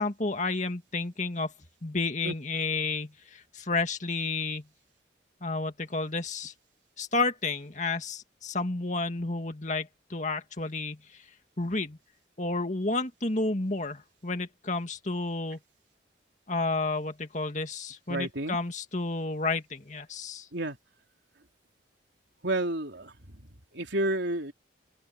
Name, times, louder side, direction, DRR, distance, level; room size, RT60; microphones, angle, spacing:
voice 1, 0.0-1.5 1.8-4.6 5.4-6.5 7.0-11.2 11.6-12.0 12.4-15.6 16.5-20.5, left 3 dB, 40° left, 2.1 m, -31 dB
voice 2, 18.1-18.6 20.5-20.8 22.4-23.1 23.7-24.5, right 1 dB, 75° right, 3.6 m, -30 dB
open air
head